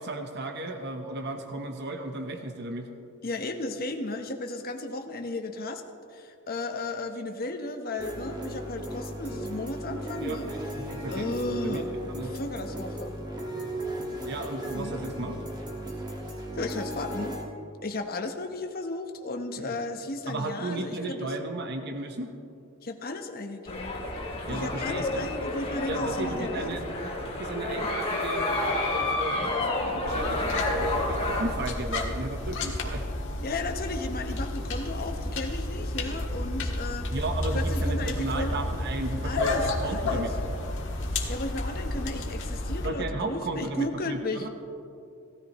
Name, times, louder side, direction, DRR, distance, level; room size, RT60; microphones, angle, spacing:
voice 1, 0.0-2.9 10.2-11.4 11.6-12.3 14.2-15.4 19.6-19.7 20.3-22.3 24.5-25.3 25.8-33.1 37.1-40.3 42.8-44.5, right 2 dB, 50° right, 5 dB, 0.8 m, -34 dB
voice 2, 3.2-5.8 6.1-10.5 11.1-12.0 12.3-13.2 14.7-15.0 16.5-17.4 17.8-21.3 22.8-23.9 24.5-26.8 33.4-37.1 37.5-38.6 39.2-40.3 41.3-44.5, left 2 dB, 45° left, 5 dB, 0.9 m, -34 dB
sound 1, 8.0-17.4, right 1 dB, 20° right, 1.6 m, -36 dB
sound 2, 23.7-31.4, left 2 dB, 30° left, 2.3 m, -30 dB
sound 3, 30.1-42.9, left 1 dB, 60° left, 1.6 m, -31 dB
17.0 x 13.5 x 3.0 m, 2.6 s
head